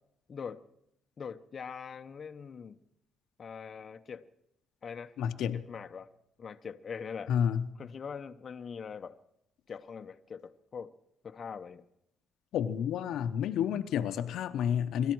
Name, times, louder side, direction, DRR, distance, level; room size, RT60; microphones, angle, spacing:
voice 1, 0.3-0.6 1.2-2.8 3.4-4.2 4.8-5.1 5.7-6.1 6.4-7.3 7.8-9.2 9.7-10.9 11.2-11.8, left 6 dB, 45° left, 0.8 m, -42 dB
voice 2, 5.2-5.6 7.3-7.7 12.5-15.1, left 8 dB, 80° left, 0.9 m, -30 dB
24.5 x 13.0 x 4.7 m
cardioid pair, 90°, 0 cm